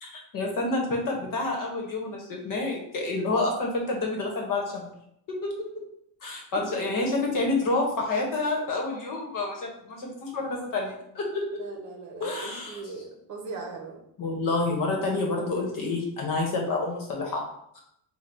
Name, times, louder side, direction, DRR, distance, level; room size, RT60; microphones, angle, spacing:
voice 1, 0.0-4.9 5.3-5.7 6.2-11.6 12.2-12.8 14.2-17.4 17.7-17.8, left 2 dB, 55° left, 0 dB, 1.1 m, -28 dB
voice 2, 11.6-14.0, right 4 dB, 50° right, 2 dB, 0.8 m, -39 dB
3.9 x 2.3 x 4.3 m, 0.73 s
cardioid pair, 160°, 39 cm